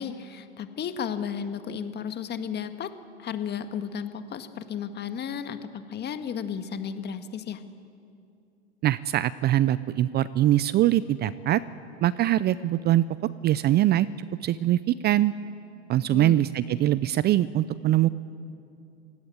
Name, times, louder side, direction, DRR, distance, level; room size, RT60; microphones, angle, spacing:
voice 1, 0.0-2.9 3.2-7.6 16.1-16.4, left 7 dB, 30° left, 9 dB, 1.8 m, -33 dB
voice 2, 8.8-11.6 12.0-13.0 13.4-14.1 14.4-15.3 15.9-18.1, right 13 dB, 30° right, 17 dB, 0.5 m, -22 dB
29.0 x 17.0 x 8.7 m, 2.5 s
hypercardioid pair, 105°, 33 cm